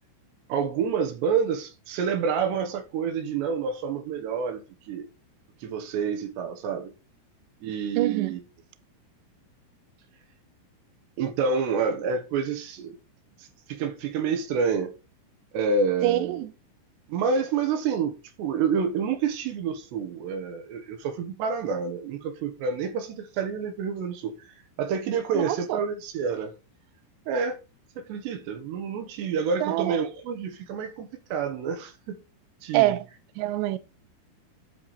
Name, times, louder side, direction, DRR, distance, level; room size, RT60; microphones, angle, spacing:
voice 1, 0.5-5.1 5.6-6.9 7.6-8.4 11.2-13.0 13.4-14.9 15.5-16.4 17.1-24.4 24.8-26.5 27.3-27.6 28.0-32.2 32.6-33.0, right 6 dB, 70° right, 3.0 m, -28 dB
voice 2, 8.0-8.3 16.0-16.5 25.3-25.8 29.6-30.0 32.7-33.0 33.4-33.8, right 15 dB, 85° right, 2.5 m, -25 dB
12.0 x 4.9 x 4.2 m
omnidirectional pair, 6.0 m